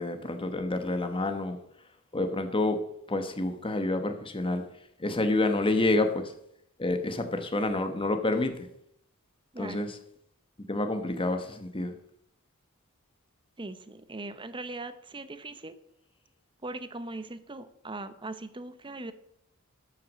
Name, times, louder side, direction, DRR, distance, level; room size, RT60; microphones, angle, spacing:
voice 1, 0.0-1.6 2.1-2.8 3.1-4.6 5.0-6.3 6.8-8.7 9.6-9.9 10.7-11.9, left 2 dB, 25° left, 7 dB, 1.1 m, -28 dB
voice 2, 9.5-9.9 13.6-15.8 16.6-19.1, right 2 dB, 20° right, 12 dB, 0.8 m, -40 dB
13.0 x 6.0 x 6.2 m, 0.75 s
head